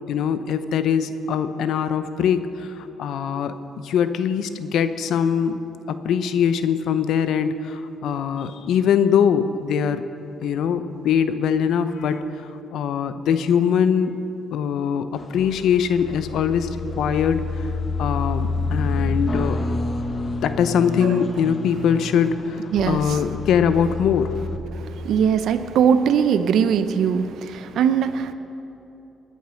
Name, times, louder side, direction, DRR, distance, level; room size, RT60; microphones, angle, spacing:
voice 1, 0.1-3.5 3.8-5.6 5.9-10.0 10.4-12.2 12.7-14.2 14.5-16.7 17.0-17.5 18.0-19.6 20.4-24.4, left 7 dB, 75° left, 11 dB, 0.8 m, -22 dB
sound 1, 15.1-24.6, left 3 dB, 35° left, 1.2 m, -28 dB
voice 2, 22.5-23.2 24.7-28.3, right 7 dB, 75° right, 11 dB, 0.7 m, -21 dB
21.0 x 9.2 x 6.3 m, 2.9 s
cardioid pair, 90°, 0 cm